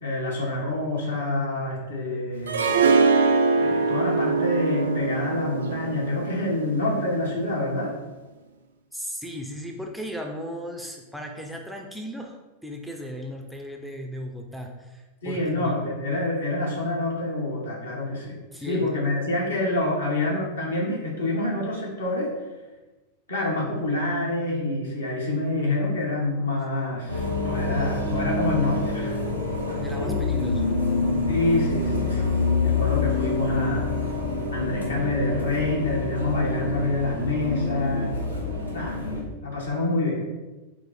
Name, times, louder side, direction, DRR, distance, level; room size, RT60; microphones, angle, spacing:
voice 1, 0.0-2.8 3.5-7.9 15.2-18.4 18.7-22.3 23.3-29.1 31.3-33.9 34.5-38.1 38.7-39.0 39.4-40.2, left 2 dB, 70° left, -3 dB, 1.1 m, -27 dB
Harp, 2.5-7.5, right 4 dB, 65° right, 0.4 m, -23 dB
voice 2, 8.9-15.8 18.5-18.9 29.8-30.7, equal, ahead, 1 dB, 0.4 m, -36 dB
sound 1, 27.1-39.2, left 3 dB, 90° left, 0.7 m, -26 dB
4.8 x 2.0 x 4.0 m, 1.1 s
figure-of-eight pair, 90°, 0 cm